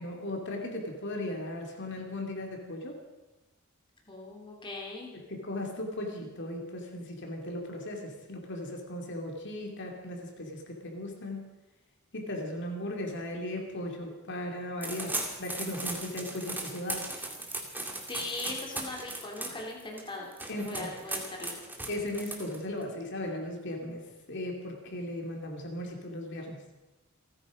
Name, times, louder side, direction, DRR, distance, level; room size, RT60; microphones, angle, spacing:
voice 1, 0.0-3.0 5.1-11.5 12.1-17.1 20.5-20.9 21.9-26.6, left 1 dB, 55° left, 2 dB, 3.0 m, -37 dB
voice 2, 4.1-5.1 18.1-20.3 20.6-21.6, left 2 dB, 25° left, -1 dB, 2.8 m, -39 dB
sound 1, 14.8-22.8, right 2 dB, 10° right, 2.3 m, -38 dB
29.0 x 9.7 x 5.1 m, 1.1 s
head